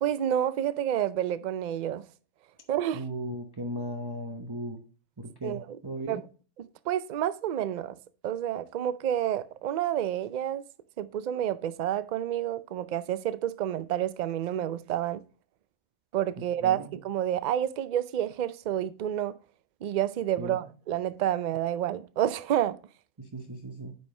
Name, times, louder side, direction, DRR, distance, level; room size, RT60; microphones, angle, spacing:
voice 1, 0.0-2.0 2.7-3.0 5.4-5.6 6.1-6.2 6.6-7.9 8.2-10.6 11.0-15.2 16.1-19.3 19.8-22.8, right 11 dB, 60° right, 0.5 m, -29 dB
voice 2, 2.9-4.8 5.2-6.2 16.6-16.9 20.4-20.7 23.2-23.9, right 1 dB, 20° right, 0.8 m, -37 dB
9.1 x 5.5 x 3.2 m
omnidirectional pair, 1.3 m